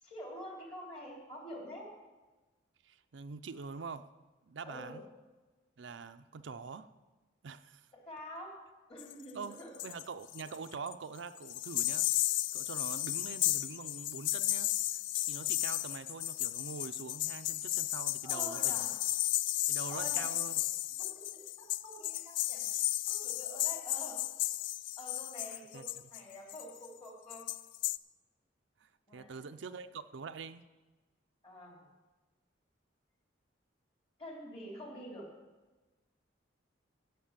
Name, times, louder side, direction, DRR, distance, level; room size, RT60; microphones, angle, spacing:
voice 1, 0.0-1.9 4.6-5.0 7.9-8.6 8.9-9.7 18.2-19.0 19.9-20.3 21.0-22.6 23.1-24.2 25.0-27.4 29.1-29.6 31.4-31.8 34.2-35.3, equal, 30° left, -1 dB, 3.4 m, -47 dB
voice 2, 2.8-4.0 4.5-5.0 5.8-6.9 7.4-7.8 9.3-9.6 9.8-12.1 12.5-14.7 15.2-18.9 19.7-20.6 25.7-25.8 28.8-30.7, right 5 dB, 70° right, 9 dB, 0.5 m, -44 dB
sound 1, 9.0-10.0 10.3-10.9 11.4-26.9 27.3-28.0, left 16 dB, 65° left, 0.3 m, -34 dB
16.0 x 5.9 x 7.3 m, 1.2 s
head